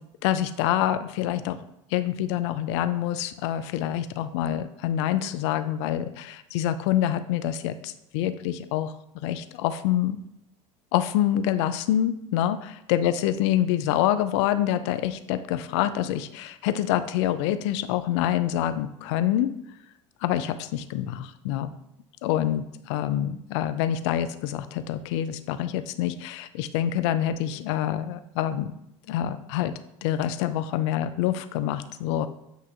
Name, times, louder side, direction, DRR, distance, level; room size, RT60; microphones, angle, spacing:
voice 1, 0.2-1.6 1.9-10.2 10.9-19.5 20.2-21.7 22.2-28.7 29.1-29.7 30.0-32.3, left 11 dB, 65° left, 11 dB, 0.4 m, -26 dB
7.8 x 2.7 x 2.5 m, 0.80 s
hypercardioid pair, 85°, 16 cm